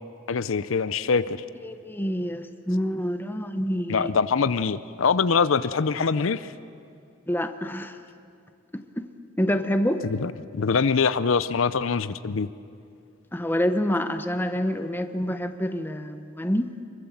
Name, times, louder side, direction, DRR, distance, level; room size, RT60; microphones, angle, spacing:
voice 1, 0.3-1.4 3.9-6.5 10.0-12.5, left 5 dB, 70° left, 14 dB, 0.6 m, -24 dB
voice 2, 1.6-4.1 7.3-8.0 8.7-8.8 9.4-10.0 13.3-16.7, equal, 10° left, 8 dB, 0.9 m, -27 dB
24.5 x 23.0 x 7.2 m, 2.4 s
head